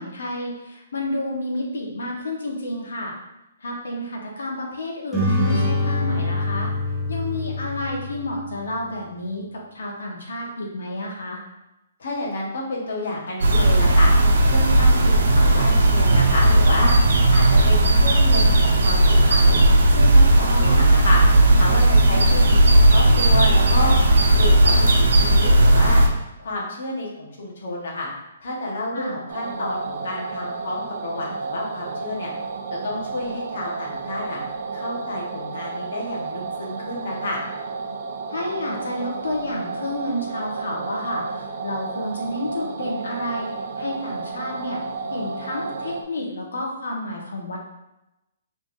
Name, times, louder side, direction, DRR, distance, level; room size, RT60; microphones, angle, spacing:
voice 1, 0.0-3.1 3.6-6.7 7.1-11.4 20.5-21.0 28.9-29.2 38.3-43.5 43.8-44.8 45.1-47.6, left 1 dB, 90° left, -1 dB, 1.3 m, -30 dB
sound 1, 5.1-8.7, left 2 dB, ahead, 0.6 m, -24 dB
voice 2, 12.0-14.1 14.4-16.9 17.3-19.6 19.9-21.2 21.5-23.9 24.3-26.0 26.4-28.1 28.4-32.3 32.7-34.4 34.7-37.4, left 1 dB, 55° left, -4 dB, 1.4 m, -30 dB
sound 2, 13.4-26.1, right 1 dB, 75° right, 0.9 m, -15 dB
sound 3, 29.3-46.0, right 4 dB, 45° right, 0.4 m, -32 dB
5.3 x 3.5 x 2.7 m, 0.93 s
hypercardioid pair, 180°, 0 cm